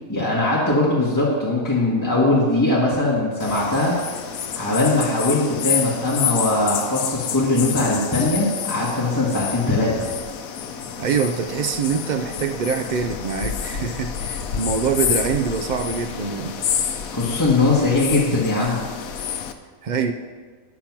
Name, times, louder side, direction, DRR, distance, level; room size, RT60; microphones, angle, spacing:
voice 1, 0.1-4.0 4.5-10.0 17.1-18.8, left 2 dB, 15° left, -6 dB, 1.4 m, -20 dB
sound 1, 3.4-19.5, left 8 dB, 85° left, 1.1 m, -29 dB
voice 2, 11.0-16.5 19.8-20.1, right 6 dB, 85° right, 5 dB, 0.4 m, -24 dB
10.0 x 6.0 x 5.9 m, 1.5 s
omnidirectional pair, 1.5 m